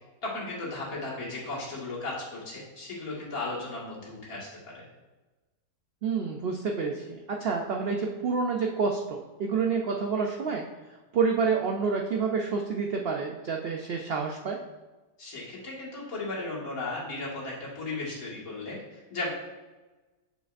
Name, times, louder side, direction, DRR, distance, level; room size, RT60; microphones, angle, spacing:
voice 1, 0.2-4.5 4.7-4.9 15.2-19.3, left 2 dB, 60° left, -6 dB, 2.3 m, -35 dB
voice 2, 6.0-10.6 11.1-14.6, right 5 dB, 90° right, 1 dB, 0.5 m, -28 dB
6.6 x 6.3 x 2.5 m, 1.2 s
omnidirectional pair, 1.7 m